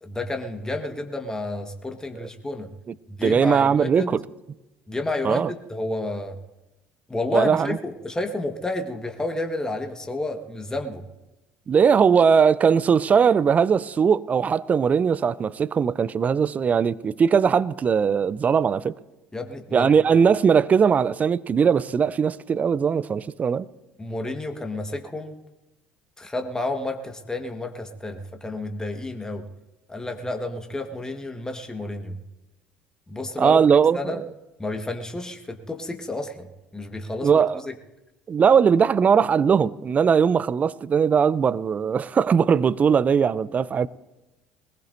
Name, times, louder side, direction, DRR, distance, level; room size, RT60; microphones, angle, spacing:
voice 1, 0.0-2.7 3.1-4.2 4.9-6.4 7.1-11.0 19.3-20.0 24.0-25.4 26.2-29.5 29.9-32.2 33.1-33.6 33.9-34.2 34.6-36.5 36.7-37.7, left 2 dB, 15° left, 1.5 m, -30 dB
voice 2, 3.2-4.2 5.2-5.5 7.3-7.8 11.7-18.9 19.7-23.7 33.4-34.2 37.2-37.6 38.3-43.9, right 6 dB, 35° right, 0.5 m, -20 dB
21.5 x 20.0 x 2.7 m
figure-of-eight pair, 60°, 5 cm